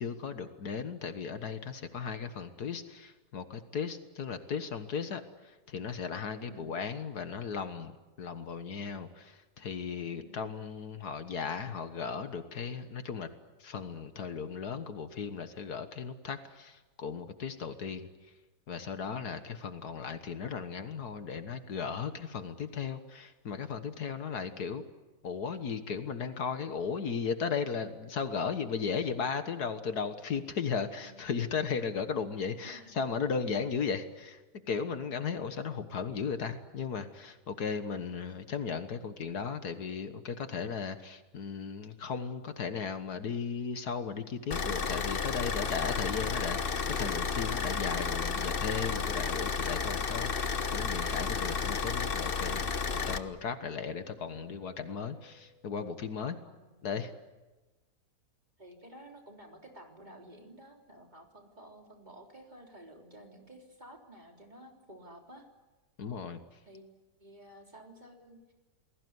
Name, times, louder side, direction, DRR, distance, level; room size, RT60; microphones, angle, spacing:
voice 1, 0.0-13.3 13.6-18.1 18.7-24.8 25.2-34.4 34.7-52.7 53.0-56.4 56.8-57.1 66.0-66.4, left 6 dB, 70° left, 9 dB, 1.9 m, -36 dB
voice 2, 6.4-6.7 10.1-10.4 24.3-24.6 31.0-31.2 32.6-33.0 56.5-56.8 58.6-65.5 66.7-66.8 67.2-68.5, right 1 dB, 25° right, 2 dB, 3.7 m, -52 dB
Car / Idling, 44.5-53.2, left 5 dB, 40° left, 1.2 m, -32 dB
sound 1, 53.2-56.1, right 2 dB, 10° left, 7.7 m, -62 dB
29.0 x 20.5 x 9.6 m, 1.2 s
omnidirectional pair, 1.7 m